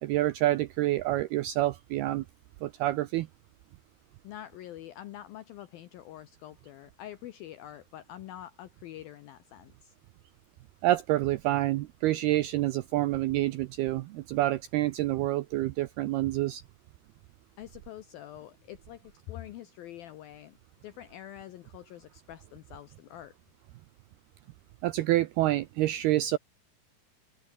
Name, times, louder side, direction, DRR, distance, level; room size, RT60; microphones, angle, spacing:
voice 1, 0.0-2.3 2.6-3.3 10.8-16.6 24.8-26.4, right 16 dB, 85° right, 2.3 m, -27 dB
voice 2, 4.2-9.9 17.6-20.6 20.8-23.4, left 12 dB, 80° left, 2.1 m, -46 dB
omnidirectional pair, 5.4 m